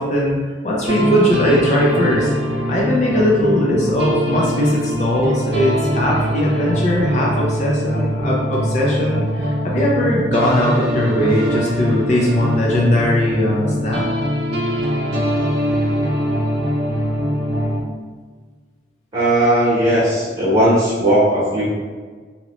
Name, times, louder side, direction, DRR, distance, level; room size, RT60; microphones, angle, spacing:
voice 1, 0.0-2.3 2.7-14.0, equal, 40° left, -3 dB, 0.5 m, -19 dB
sound 1, 0.9-17.8, equal, 65° right, 0.6 m, -22 dB
voice 2, 19.1-21.7, right 1 dB, 25° right, -9 dB, 0.9 m, -16 dB
2.8 x 2.8 x 3.0 m, 1.5 s
head